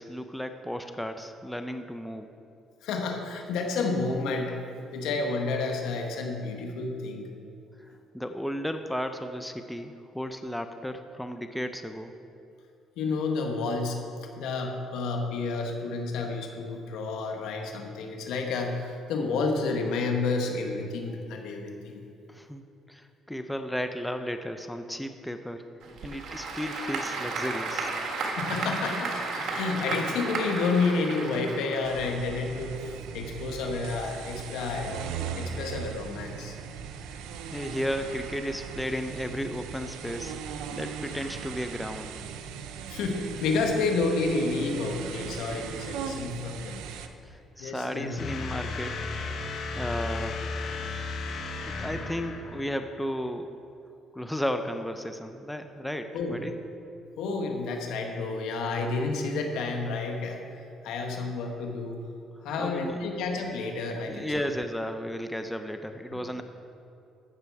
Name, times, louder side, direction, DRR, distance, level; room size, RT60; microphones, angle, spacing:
voice 1, 0.0-2.3 8.1-12.1 22.3-25.6 26.0-27.9 37.0-40.4 40.7-42.2 47.3-49.0 49.7-50.5 51.6-53.6 54.1-56.5 62.6-63.0 64.0-66.4, equal, 5° left, 7 dB, 0.7 m, -34 dB
voice 2, 2.8-4.6 4.9-7.3 13.0-14.0 14.4-22.0 28.4-35.0 35.4-36.5 42.9-46.9 47.6-48.1 56.1-56.4 57.2-60.4 60.8-62.0 62.4-64.5 66.1-66.4, left 3 dB, 80° left, 3 dB, 1.4 m, -30 dB
Applause / Crowd, 25.8-32.4, right 3 dB, 65° right, 1.7 m, -33 dB
sound 1, 31.8-47.1, right 7 dB, 90° right, 0.6 m, -38 dB
sound 2, 48.2-52.9, left 3 dB, 65° left, 1.4 m, -34 dB
14.5 x 6.8 x 4.8 m, 2.7 s
cardioid pair, 90°, 0 cm